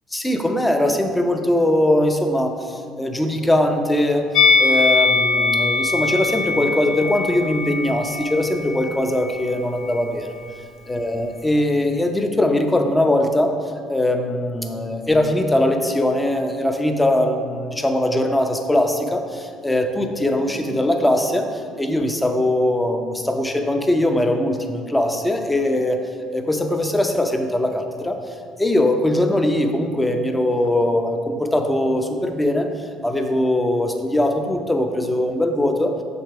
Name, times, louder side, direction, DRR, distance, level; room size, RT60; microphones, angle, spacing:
voice 1, 0.1-4.3 4.6-10.3 10.9-13.5 13.9-26.0 26.3-35.9, left 1 dB, 10° left, 5 dB, 0.7 m, -21 dB
Musical instrument, 4.3-9.6 9.8-10.1, left 3 dB, 60° left, 0.4 m, -21 dB
6.4 x 3.3 x 4.8 m, 2.1 s
hypercardioid pair, 60°, 0 cm